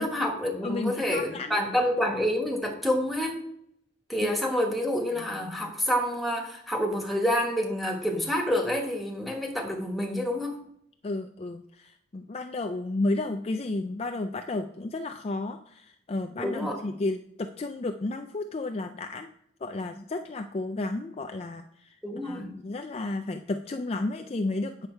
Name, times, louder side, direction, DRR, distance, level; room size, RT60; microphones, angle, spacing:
voice 1, 0.0-3.4 4.1-10.6 16.4-16.8 22.0-22.5, equal, ahead, 0 dB, 1.3 m, -28 dB
voice 2, 0.6-1.6 11.0-19.3 19.6-22.0 22.2-24.9, left 2 dB, 30° left, 6 dB, 0.4 m, -32 dB
8.6 x 6.7 x 4.4 m, 0.72 s
head